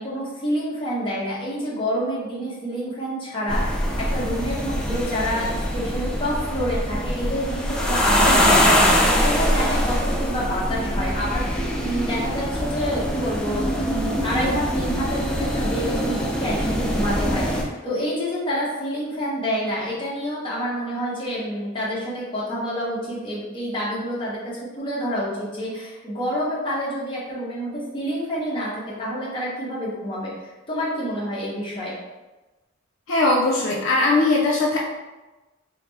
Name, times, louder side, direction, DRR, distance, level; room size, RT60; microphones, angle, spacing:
voice 1, 0.0-31.9, equal, 25° left, -7 dB, 1.0 m, -28 dB
sound 1, 3.5-17.6, equal, 5° left, 0.3 m, -23 dB
voice 2, 33.1-34.8, left 2 dB, 70° left, -2 dB, 0.4 m, -19 dB
3.7 x 2.1 x 3.3 m, 1.1 s
head